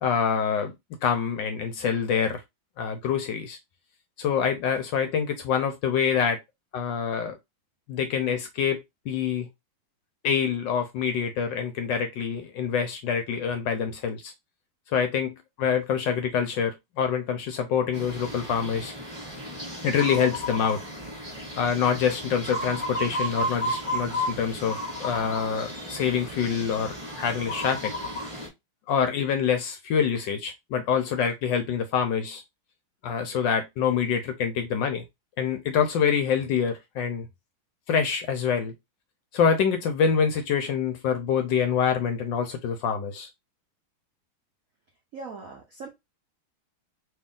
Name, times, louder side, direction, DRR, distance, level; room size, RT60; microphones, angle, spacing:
voice 1, 0.0-0.7 1.0-2.4 2.8-3.6 4.2-6.4 6.7-7.3 7.9-9.5 10.2-14.3 14.9-18.9 19.8-20.8 21.6-27.9 28.9-32.4 33.0-35.0 35.4-37.3 37.9-38.7 39.3-43.3, left 7 dB, 70° left, 1.1 m, -26 dB
sound 1, 17.9-28.5, equal, 15° right, 1.5 m, -33 dB
voice 2, 45.1-45.9, right 4 dB, 70° right, 0.7 m, -40 dB
3.3 x 2.8 x 3.6 m
omnidirectional pair, 2.4 m